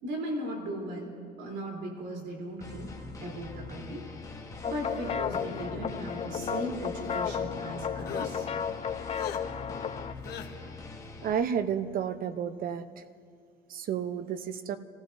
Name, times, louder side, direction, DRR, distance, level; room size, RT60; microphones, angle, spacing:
voice 1, 0.0-1.1 1.4-2.9 3.2-4.1 4.7-8.5, right 1 dB, 85° right, -1 dB, 3.7 m, -37 dB
sound 1, 2.6-11.3, left 3 dB, 20° left, 1.3 m, -43 dB
sound 2, 4.6-10.1, left 7 dB, 35° left, 0.5 m, -34 dB
sound 3, 5.6-6.4 7.0-7.5 8.0-8.3 9.1-9.4 10.2-10.5, left 10 dB, 70° left, 1.2 m, -44 dB
voice 2, 11.2-13.0 13.7-14.8, right 8 dB, 60° right, 11 dB, 0.8 m, -31 dB
28.5 x 15.5 x 2.7 m, 2.2 s
cardioid pair, 110°, 17 cm